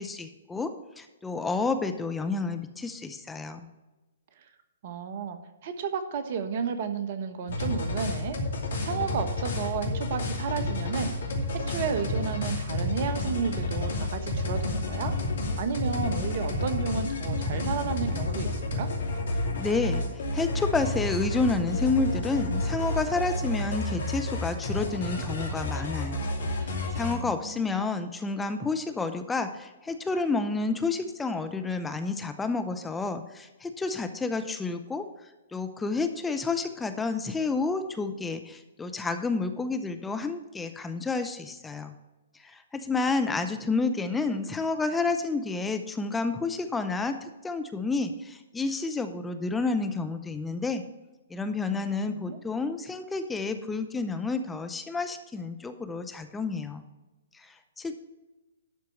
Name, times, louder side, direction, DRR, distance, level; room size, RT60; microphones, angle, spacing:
voice 1, 0.0-3.7 19.6-26.3 26.6-35.1 35.5-41.9 42.4-50.8 51.3-56.8 57.3-58.0, left 3 dB, 10° left, 8 dB, 0.7 m, -30 dB
voice 2, 4.8-8.4 8.8-11.1 11.5-15.1 15.6-18.9 27.1-27.7 51.7-52.4, right 6 dB, 50° right, 9 dB, 1.2 m, -32 dB
sound 1, 7.5-27.1, left 2 dB, 65° left, 2.6 m, -30 dB
12.0 x 4.5 x 6.9 m, 1.1 s
hypercardioid pair, 125°, 0 cm